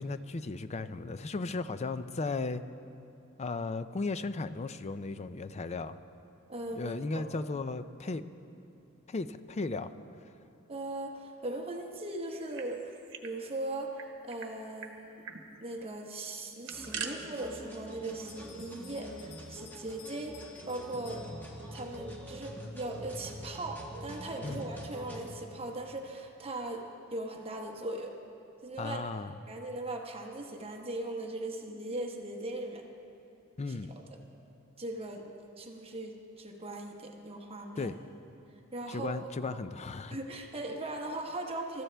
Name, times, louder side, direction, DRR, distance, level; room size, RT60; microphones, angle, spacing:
voice 1, 0.0-2.6 3.4-6.0 6.8-8.2 9.1-9.9 24.4-24.6 28.8-29.3 33.6-33.9 37.8-38.0 38.9-40.2, left 3 dB, 30° left, 12 dB, 0.4 m, -35 dB
voice 2, 6.5-7.3 10.7-12.9 13.2-15.3 15.6-20.4 20.7-21.3 21.7-28.2 28.6-29.0 29.5-32.8 33.7-34.2 34.8-35.3 35.6-37.9 38.7-39.6 40.1-41.8, right 2 dB, 25° right, 2 dB, 1.0 m, -39 dB
sound 1, 12.3-13.3 13.6-13.7 14.0-14.5 14.8-14.9 15.2-15.4 16.4-17.1, right 7 dB, 60° right, 1.1 m, -42 dB
sound 2, 16.7-25.3, equal, 10° left, 1.7 m, -45 dB
Bell, 18.3-22.0, left 7 dB, 80° left, 1.5 m, -55 dB
24.0 x 13.5 x 3.4 m, 2.8 s
head